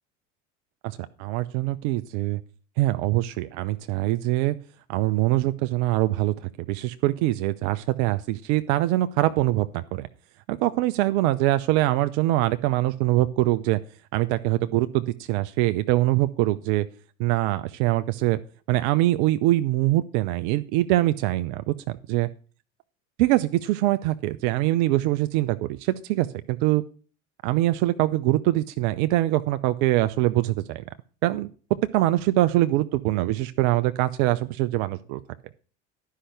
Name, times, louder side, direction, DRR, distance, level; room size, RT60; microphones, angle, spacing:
voice 1, 0.8-2.4 2.8-4.6 4.9-6.3 6.7-10.1 10.5-13.8 14.1-16.9 17.2-18.4 18.7-21.7 22.1-22.3 23.2-26.8 27.4-30.8 31.2-31.5 31.9-35.2, right 16 dB, 55° right, 12 dB, 0.7 m, -23 dB
11.5 x 5.7 x 6.6 m, 0.38 s
hypercardioid pair, 75°, 39 cm